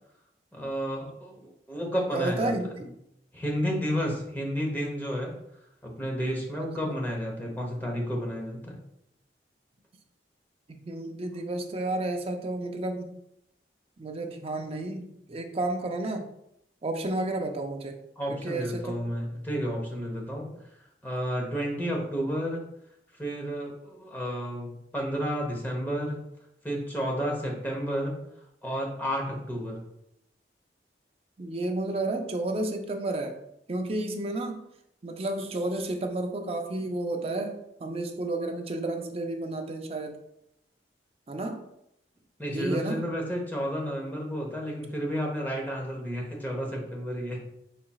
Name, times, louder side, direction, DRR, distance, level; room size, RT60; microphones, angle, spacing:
voice 1, 0.5-2.5 3.3-5.3 5.8-8.8 18.2-20.6 21.0-22.6 23.2-26.2 26.6-28.2 28.6-29.8 42.4-47.4, equal, 10° left, -1 dB, 0.9 m, -31 dB
voice 2, 2.1-2.9 6.6-6.9 10.8-13.1 14.0-16.3 16.8-17.9 18.3-19.0 31.4-33.4 33.7-34.6 35.0-40.2 41.3-41.7 42.5-43.1, right 2 dB, 35° right, 5 dB, 0.5 m, -31 dB
4.8 x 4.2 x 2.3 m, 0.78 s
head